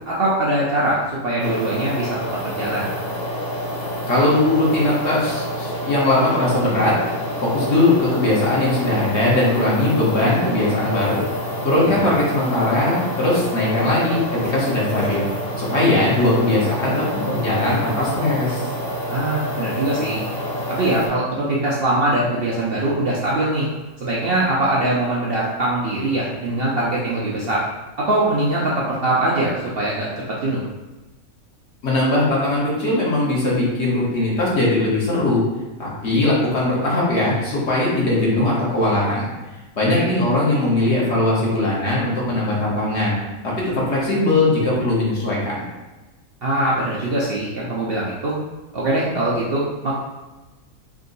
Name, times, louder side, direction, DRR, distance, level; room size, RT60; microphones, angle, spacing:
voice 1, 0.1-2.2 2.4-2.9 11.9-12.0 19.1-20.2 20.8-23.7 24.0-27.6 28.0-30.6 39.9-40.1 46.4-48.3 48.7-49.9, right 1 dB, 55° right, -6 dB, 0.7 m, -22 dB
sound 1, 1.4-21.1, equal, 80° left, 1.7 m, -28 dB
voice 2, 4.1-7.0 7.4-11.2 11.6-15.3 15.6-18.7 31.8-35.4 35.8-39.3 39.8-45.6, left 2 dB, 50° left, -6 dB, 1.3 m, -20 dB
3.6 x 2.7 x 3.9 m, 1.1 s
omnidirectional pair, 1.5 m